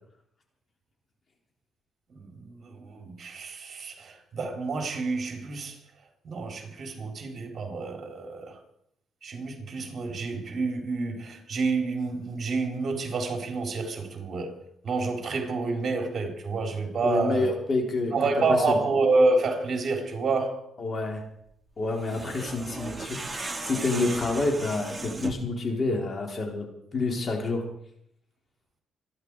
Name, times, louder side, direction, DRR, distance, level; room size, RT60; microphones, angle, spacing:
voice 1, 2.1-5.8 6.2-8.6 9.2-14.6 14.8-17.5 18.1-20.7, right 3 dB, 45° right, 4.1 m, -28 dB
voice 2, 17.0-18.1 18.5-18.8 20.8-21.2 21.8-26.7 26.9-27.6, left 3 dB, 40° left, 4.2 m, -28 dB
sound 1, 21.9-25.5, right 3 dB, 15° right, 2.4 m, -36 dB
26.0 x 11.0 x 4.9 m
cardioid pair, 90°, 0 cm